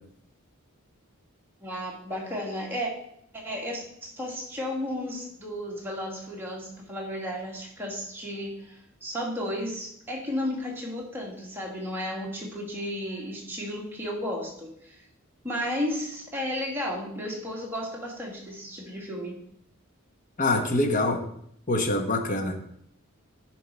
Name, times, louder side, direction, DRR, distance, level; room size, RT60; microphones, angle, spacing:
voice 1, 1.6-2.9 3.3-15.0 15.4-19.3, equal, 10° right, -3 dB, 1.8 m, -33 dB
voice 2, 20.4-21.2 21.7-22.6, left 2 dB, 35° left, 4 dB, 1.0 m, -25 dB
10.5 x 4.6 x 4.5 m, 0.71 s
head